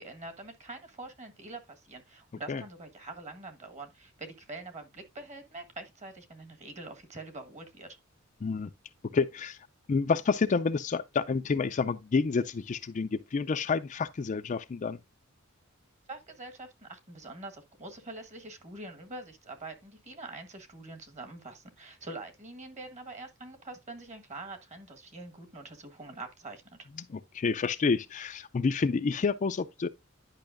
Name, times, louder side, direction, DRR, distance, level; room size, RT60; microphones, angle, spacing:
voice 1, 0.0-7.9 16.1-26.9, right 2 dB, 35° right, 1.4 m, -45 dB
voice 2, 9.1-9.6 9.9-15.0 27.1-29.9, left 4 dB, 35° left, 0.4 m, -29 dB
10.5 x 5.5 x 2.5 m
head